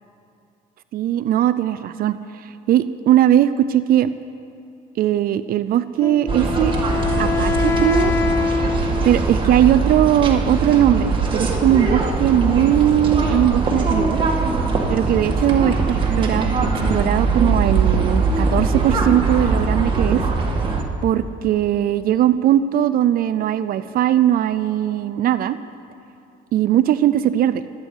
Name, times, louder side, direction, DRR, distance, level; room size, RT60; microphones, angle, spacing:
voice 1, 0.9-4.1 5.0-6.7 7.2-8.1 9.0-14.2 14.9-16.5 16.9-20.2 21.0-25.6 26.5-27.6, right 11 dB, 60° right, 13 dB, 0.5 m, -19 dB
Wind instrument woodwind instrument, 6.0-9.6, left 5 dB, 15° left, 0.5 m, -24 dB
sound 1, 6.3-20.8, right 3 dB, 30° right, 2.0 m, -21 dB
24.0 x 9.0 x 5.5 m, 2.5 s
cardioid pair, 110°, 17 cm